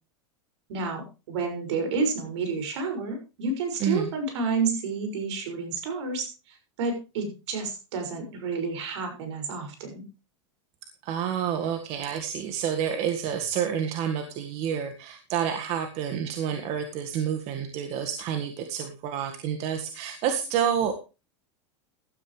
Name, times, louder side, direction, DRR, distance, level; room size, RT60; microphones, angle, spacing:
voice 1, 0.7-1.0 1.3-10.0, right 4 dB, 75° right, 6 dB, 6.2 m, -30 dB
voice 2, 3.8-4.1 11.0-20.9, right 8 dB, 45° right, 6 dB, 1.8 m, -29 dB
16.0 x 12.0 x 3.3 m, 0.30 s
supercardioid pair, 145°, 15 cm